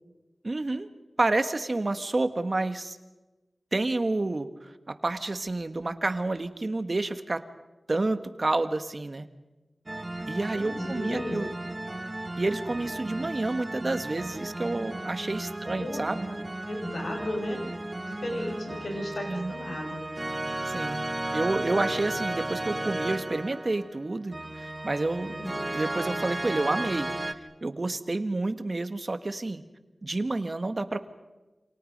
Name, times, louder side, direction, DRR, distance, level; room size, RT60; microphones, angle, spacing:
voice 1, 0.4-0.9 1.2-3.0 3.7-7.4 7.9-9.3 10.3-11.5 12.4-16.3 19.3-19.5 20.6-21.0 21.3-25.3 25.7-27.1 27.6-29.6 30.0-31.1, right 2 dB, 50° right, 9 dB, 1.6 m, -29 dB
sound 1, 9.9-27.3, right 1 dB, 30° right, 1.5 m, -34 dB
voice 2, 10.3-11.4 15.5-16.0 16.3-16.4 16.7-17.6 18.1-20.0 25.2-25.6, left 1 dB, 85° left, 2 dB, 6.7 m, -35 dB
28.5 x 28.0 x 5.5 m, 1.1 s
wide cardioid pair, 55°, 0 cm